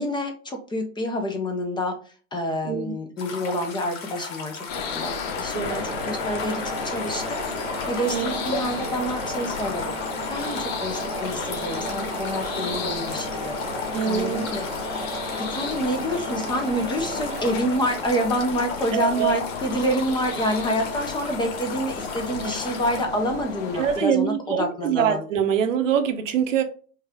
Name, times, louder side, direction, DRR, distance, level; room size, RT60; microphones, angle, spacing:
voice 1, 0.0-10.0 10.3-14.7 15.4-25.2, equal, 10° left, 0.7 m, -28 dB
sound 1, 3.2-23.0, left 4 dB, 60° left, 1.5 m, -36 dB
sound 2, 4.7-24.0, left 6 dB, 40° left, 1.7 m, -33 dB
sound 3, 5.6-19.4, right 3 dB, 15° right, 1.1 m, -36 dB
voice 2, 13.9-14.5 18.9-19.4 22.3-22.5 23.7-26.6, right 8 dB, 65° right, 0.9 m, -24 dB
5.5 x 2.4 x 3.6 m
hypercardioid pair, 105°, 42 cm